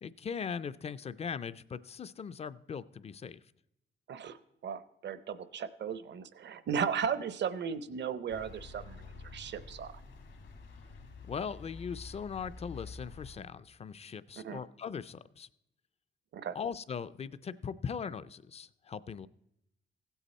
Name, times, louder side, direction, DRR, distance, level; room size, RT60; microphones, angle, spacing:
voice 1, 0.0-3.4 11.3-15.5 16.5-19.3, left 6 dB, 35° left, 16 dB, 0.4 m, -40 dB
voice 2, 4.6-9.9 14.4-14.6 16.3-16.6, right 7 dB, 65° right, 14 dB, 0.7 m, -36 dB
sound 1, 8.3-13.4, left 4 dB, 75° left, 1.7 m, -48 dB
16.0 x 8.2 x 4.2 m, 0.83 s
wide cardioid pair, 140°, 20 cm